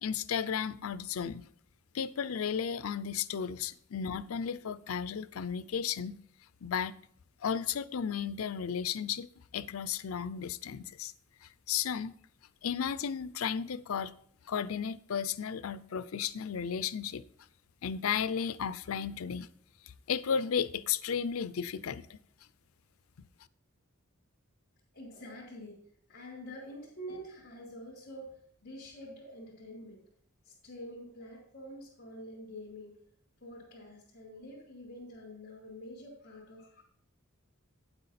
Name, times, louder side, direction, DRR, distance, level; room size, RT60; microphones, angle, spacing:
voice 1, 0.0-1.4 1.9-6.2 6.6-7.0 7.4-9.3 9.5-11.1 11.7-12.1 12.6-14.1 14.5-17.3 17.8-19.5 20.1-22.1, left 7 dB, 80° left, 0.5 m, -34 dB
voice 2, 24.9-25.8 26.1-30.0 30.4-33.0 33.4-36.8, equal, 50° left, 3.4 m, -47 dB
9.6 x 8.0 x 4.2 m
head